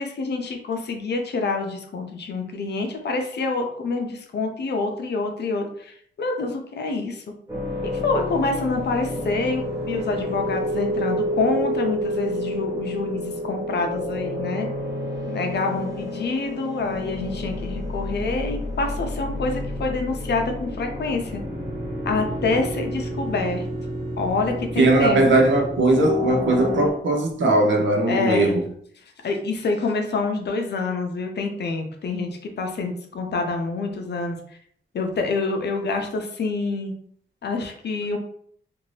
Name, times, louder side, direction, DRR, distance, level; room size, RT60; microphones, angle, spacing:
voice 1, 0.0-7.2 7.8-14.7 15.3-21.4 22.0-23.7 24.2-25.4 28.1-28.6 29.2-34.4 34.9-36.9 37.4-38.2, left 3 dB, 60° left, 0.6 m, -27 dB
sound 1, 7.5-26.9, left 1 dB, 15° right, 1.1 m, -29 dB
voice 2, 24.8-28.6, right 2 dB, 80° right, 0.7 m, -19 dB
2.6 x 2.5 x 3.2 m
wide cardioid pair, 160°, 19 cm